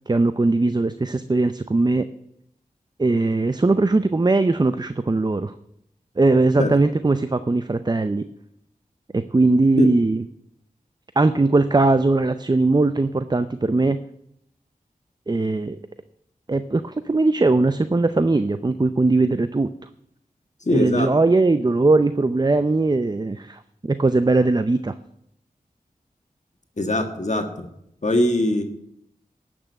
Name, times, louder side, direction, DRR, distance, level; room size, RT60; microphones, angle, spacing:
voice 1, 0.1-2.1 3.0-5.5 6.2-8.2 9.1-10.2 11.2-14.0 15.3-15.8 16.5-19.7 20.7-24.9, right 3 dB, 25° right, 11 dB, 0.5 m, -20 dB
voice 2, 20.6-21.1 26.8-27.7 28.0-28.6, left 1 dB, 50° left, 4 dB, 1.6 m, -21 dB
12.0 x 6.2 x 8.0 m, 0.76 s
cardioid pair, 45°, 15 cm